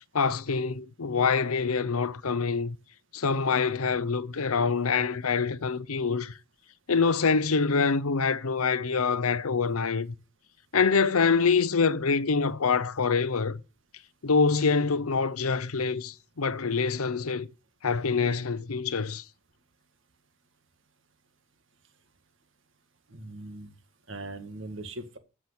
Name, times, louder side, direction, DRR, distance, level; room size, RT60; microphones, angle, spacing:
voice 1, 0.1-2.8 3.1-6.3 6.9-10.1 10.7-13.6 14.2-17.5 17.8-19.2, left 5 dB, 85° left, 0.8 m, -25 dB
voice 2, 23.1-23.7 24.1-25.2, right 2 dB, 60° right, 1.9 m, -40 dB
14.5 x 6.1 x 8.0 m
head